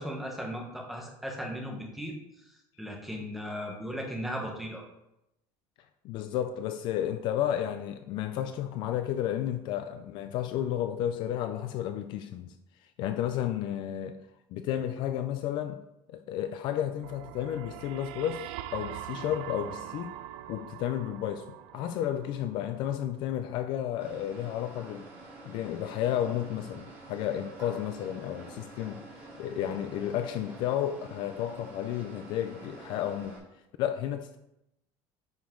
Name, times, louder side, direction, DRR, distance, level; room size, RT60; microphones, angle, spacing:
voice 1, 0.0-2.1 2.8-4.8, equal, ahead, 1.1 m, -36 dB
voice 2, 6.0-12.5 13.0-14.2 14.5-15.8 16.1-20.2 20.5-25.1 25.5-29.0 29.4-33.4 33.8-34.4, left 11 dB, 45° left, 0.4 m, -32 dB
sound 1, 17.0-22.9, right 12 dB, 70° right, 0.4 m, -43 dB
sound 2, 24.0-33.4, right 2 dB, 20° right, 2.5 m, -48 dB
9.5 x 5.3 x 3.8 m
cardioid pair, 180°, 11 cm